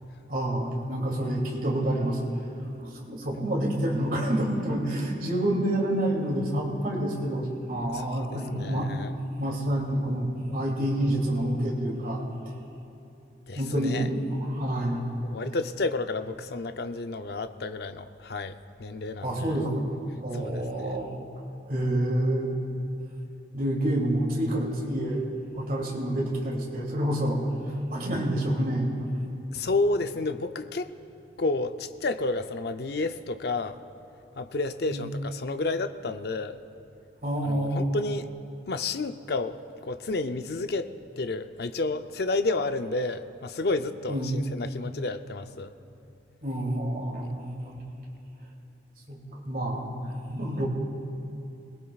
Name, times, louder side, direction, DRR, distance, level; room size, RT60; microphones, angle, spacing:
voice 1, 0.3-2.5 2.8-8.9 9.4-12.2 13.5-15.0 19.2-19.9 20.2-21.1 21.7-22.6 23.5-25.2 25.5-27.4 27.9-28.9 34.8-35.1 37.2-37.9 44.1-44.4 46.4-47.8 49.1-49.9 50.3-50.7, right 1 dB, 50° right, -2 dB, 2.7 m, -28 dB
voice 2, 8.3-9.1 13.5-14.1 15.2-19.5 20.3-20.9 29.5-30.9 31.4-33.8 34.4-36.6 37.4-38.3 38.7-45.7, left 3 dB, 60° left, 9 dB, 0.5 m, -31 dB
25.5 x 18.5 x 2.4 m, 2.9 s
head